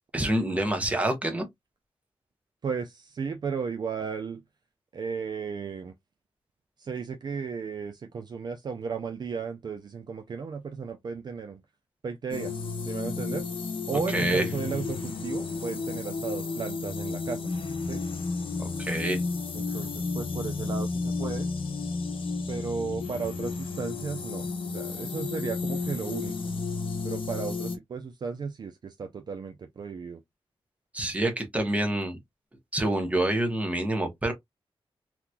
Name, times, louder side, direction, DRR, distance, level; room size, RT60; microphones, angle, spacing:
voice 1, 0.1-1.5 14.1-14.5 18.6-19.2 30.9-32.2 32.7-34.3, right 1 dB, 15° right, 1.0 m, -27 dB
voice 2, 2.6-4.4 4.9-5.9 6.8-11.6 12.0-13.5 13.9-17.4 17.8-18.0 19.5-21.5 22.5-26.5 27.0-30.2, right 5 dB, 45° right, 0.4 m, -34 dB
sound 1, 12.3-27.8, left 4 dB, 60° left, 0.9 m, -32 dB
3.7 x 3.0 x 2.2 m
wide cardioid pair, 160°, 10 cm